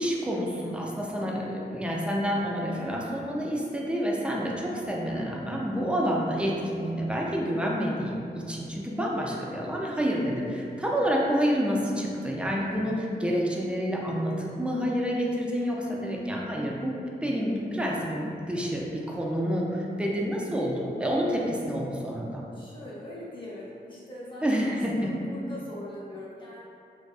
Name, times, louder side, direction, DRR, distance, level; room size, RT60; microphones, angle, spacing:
voice 1, 0.0-22.4 24.4-25.1, equal, 5° right, -2 dB, 0.4 m, -28 dB
voice 2, 1.2-1.6 6.6-6.9 9.4-9.7 13.6-13.9 17.2-17.6 21.4-21.7 22.5-26.6, left 1 dB, 25° left, -7 dB, 0.8 m, -43 dB
2.5 x 2.3 x 2.3 m, 2.5 s
cardioid pair, 60°, 18 cm